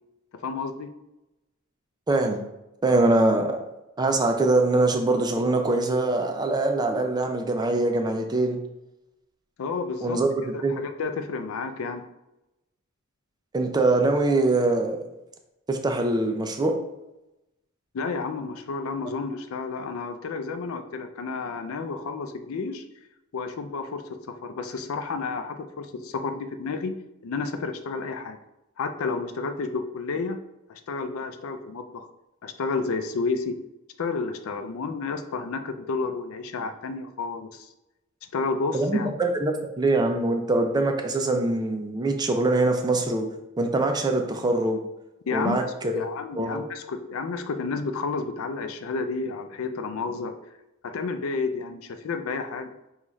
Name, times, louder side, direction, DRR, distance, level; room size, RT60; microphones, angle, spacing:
voice 1, 0.4-0.9 9.6-10.2 10.5-12.1 17.9-22.8 23.3-28.4 28.8-32.1 32.4-33.6 34.0-37.7 38.3-39.1 45.3-45.6 45.9-50.3 50.8-52.7, left 4 dB, 75° left, 8 dB, 0.4 m, -31 dB
voice 2, 2.1-2.4 2.8-3.6 4.0-8.6 10.0-10.3 10.6-10.7 13.5-15.0 15.7-16.8 38.7-43.3 43.6-44.8 45.3-46.0 46.3-46.6, right 2 dB, 20° right, 4 dB, 0.4 m, -23 dB
5.3 x 2.4 x 3.1 m, 0.93 s
head